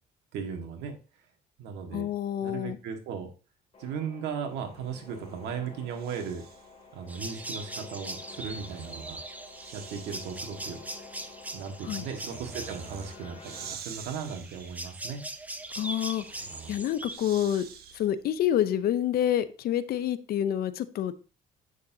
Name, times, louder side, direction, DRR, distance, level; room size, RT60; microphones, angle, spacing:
voice 1, 0.3-0.9 1.6-2.1 2.4-3.3 3.8-6.4 6.9-9.2 9.7-10.8 11.5-15.2, right 6 dB, 85° right, 4 dB, 1.7 m, -37 dB
voice 2, 1.9-2.8 11.8-12.1 15.7-16.2 16.7-17.7 17.9-21.1, left 11 dB, 65° left, 13 dB, 0.7 m, -28 dB
sound 1, 3.7-13.7, left 4 dB, 35° left, 2.8 m, -50 dB
Breathing, 4.8-6.8 8.0-18.3, right 7 dB, 65° right, 1.3 m, -48 dB
sound 2, 7.1-17.2, right 2 dB, 10° right, 0.8 m, -41 dB
8.3 x 6.5 x 2.8 m, 0.34 s
cardioid pair, 110°, 17 cm